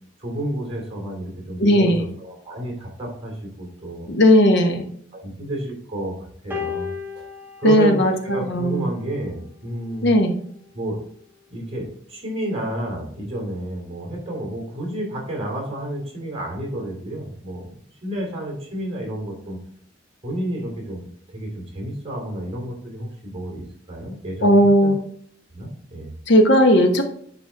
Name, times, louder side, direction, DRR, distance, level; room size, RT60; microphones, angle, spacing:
voice 1, 0.2-4.1 5.1-6.9 7.6-10.1 10.7-11.0 11.5-17.7 18.0-19.6 20.2-24.9 25.5-26.1, right 1 dB, 30° right, -1 dB, 2.9 m, -30 dB
voice 2, 1.6-2.0 4.1-4.9 7.6-8.1 8.4-8.9 10.0-10.3 24.4-25.0 26.3-27.0, equal, 65° left, 5 dB, 1.1 m, -16 dB
sound 1, 6.5-9.0 10.0-10.2, left 6 dB, 10° right, 1.3 m, -34 dB
9.9 x 4.3 x 3.4 m, 0.63 s
head